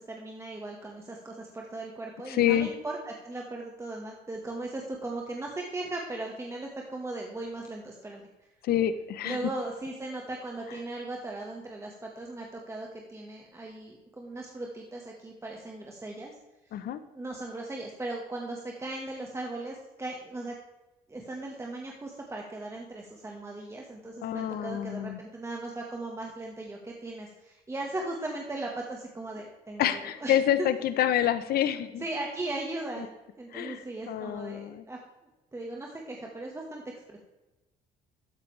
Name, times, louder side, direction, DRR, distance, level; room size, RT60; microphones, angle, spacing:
voice 1, 0.0-8.2 9.2-16.3 16.7-16.8 17.1-20.5 21.1-30.7 32.0-33.0 33.4-35.0 35.5-36.8 37.1-37.2, right 2 dB, 15° right, 0 dB, 1.7 m, -38 dB
voice 2, 2.3-2.7 8.6-9.4 16.7-17.0 24.2-25.2 29.8-32.0 33.5-34.8, left 11 dB, 65° left, 12 dB, 1.0 m, -27 dB
13.0 x 9.7 x 3.4 m, 1.0 s
cardioid pair, 110°, 17 cm